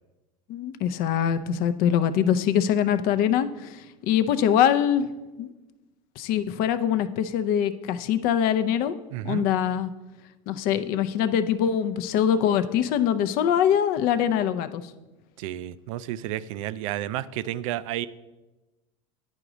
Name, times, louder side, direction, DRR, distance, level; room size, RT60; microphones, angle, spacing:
voice 1, 0.5-5.1 5.4-5.5 6.2-8.9 9.2-9.9 10.5-14.8, left 9 dB, 60° left, 12 dB, 0.5 m, -23 dB
voice 2, 9.1-9.4 15.4-18.1, right 13 dB, 80° right, 16 dB, 0.4 m, -31 dB
9.8 x 4.9 x 3.9 m, 1.1 s
supercardioid pair, 95°, 17 cm